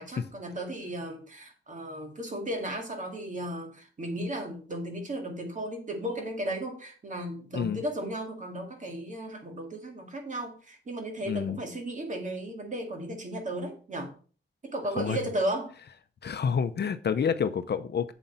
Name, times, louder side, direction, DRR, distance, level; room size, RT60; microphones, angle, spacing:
voice 1, 0.0-14.1 14.6-15.7, right 1 dB, 35° right, 3 dB, 2.4 m, -35 dB
voice 2, 11.2-11.6 15.0-15.2 16.2-18.1, left 7 dB, 55° left, 10 dB, 0.8 m, -28 dB
8.2 x 7.6 x 4.3 m, 0.39 s
wide cardioid pair, 120°, 21 cm